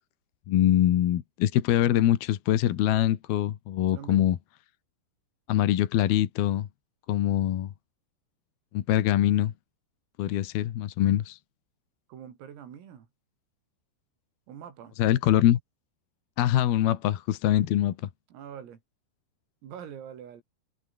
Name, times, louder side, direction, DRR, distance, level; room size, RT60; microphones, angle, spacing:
voice 1, 0.5-4.4 5.5-6.7 7.1-7.7 8.7-9.5 10.2-11.4 15.0-15.6 16.4-18.0, left 12 dB, 65° left, 2.8 m, -23 dB
voice 2, 3.9-4.3 12.1-13.1 14.5-15.0 18.3-18.8 19.6-20.4, right 9 dB, 85° right, 6.4 m, -44 dB
omnidirectional pair, 5.9 m